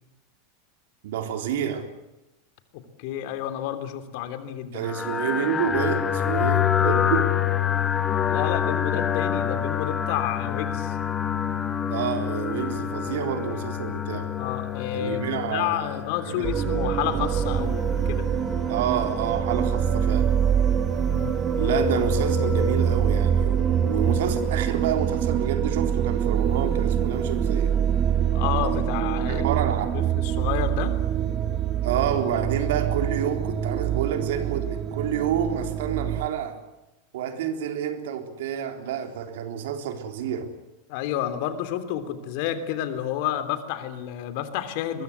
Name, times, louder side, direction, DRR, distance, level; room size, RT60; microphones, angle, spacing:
voice 1, 1.0-1.9 4.7-7.3 11.9-14.3 14.9-16.5 18.7-20.3 21.6-27.7 29.3-29.9 31.8-36.6 37.1-40.5, right 8 dB, 70° right, 7 dB, 3.7 m, -29 dB
voice 2, 3.0-4.9 8.3-11.0 14.4-18.3 21.0-21.3 21.6-21.7 28.3-29.5 29.9-30.9 40.9-45.0, left 11 dB, 60° left, 10 dB, 3.2 m, -30 dB
sound 1, 4.8-24.5, left 9 dB, 25° left, 2.3 m, -28 dB
sound 2, 16.4-36.3, right 9 dB, 35° right, 1.6 m, -25 dB
22.5 x 22.5 x 8.2 m, 0.97 s
hypercardioid pair, 95°, 0 cm